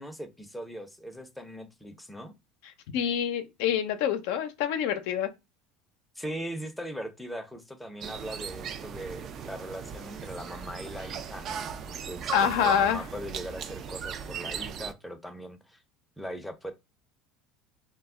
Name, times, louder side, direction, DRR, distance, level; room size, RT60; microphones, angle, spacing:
voice 1, 0.0-2.3 6.2-15.8 16.2-16.7, equal, 5° left, 0.6 m, -40 dB
voice 2, 2.9-5.3 12.3-13.0, left 8 dB, 75° left, 0.6 m, -26 dB
sound 1, 8.0-14.9, right 7 dB, 45° right, 0.4 m, -38 dB
2.2 x 2.0 x 3.6 m
supercardioid pair, 110°, 0 cm